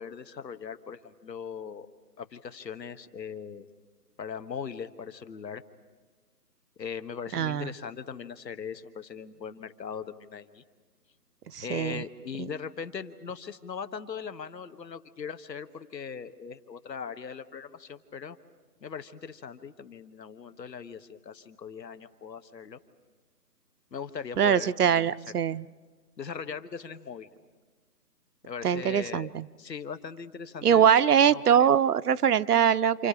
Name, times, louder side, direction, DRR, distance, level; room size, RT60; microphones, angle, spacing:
voice 1, 0.0-1.9 2.2-3.7 4.2-5.6 6.8-10.6 11.6-18.4 18.8-22.8 23.9-25.4 26.2-27.3 28.4-29.3 29.6-30.9 31.3-31.7, left 6 dB, 80° left, 11 dB, 1.5 m, -40 dB
voice 2, 7.3-7.7 11.5-12.0 12.4-12.5 24.4-25.7 28.6-29.5 30.6-33.1, right 8 dB, 65° right, 15 dB, 0.7 m, -23 dB
28.5 x 28.0 x 5.0 m, 1.5 s
hypercardioid pair, 170°, 49 cm